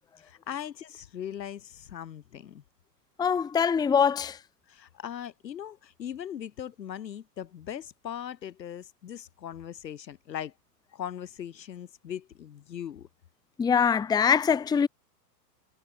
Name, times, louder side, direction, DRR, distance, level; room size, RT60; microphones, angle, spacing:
voice 1, 0.2-2.6 4.7-10.5 10.9-13.1, left 9 dB, 80° left, 6.3 m, -39 dB
voice 2, 3.2-4.4 13.6-14.9, left 7 dB, 10° left, 1.0 m, -23 dB
hypercardioid pair, 140°, 50 cm